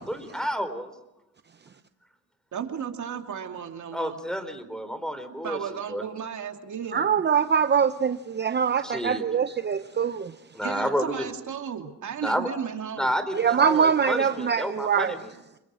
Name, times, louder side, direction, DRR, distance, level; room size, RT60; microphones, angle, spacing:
voice 1, 0.1-0.9 3.9-5.6 5.9-6.0 8.8-9.2 10.5-11.3 12.2-12.5 13.0-15.3, equal, ahead, 3.7 m, -30 dB
voice 2, 2.5-4.2 5.4-7.0 10.6-13.1, right 7 dB, 55° right, 2.9 m, -34 dB
voice 3, 6.9-10.3 13.3-15.1, right 7 dB, 30° right, 0.8 m, -23 dB
29.5 x 22.0 x 6.4 m
cardioid pair, 85°, 36 cm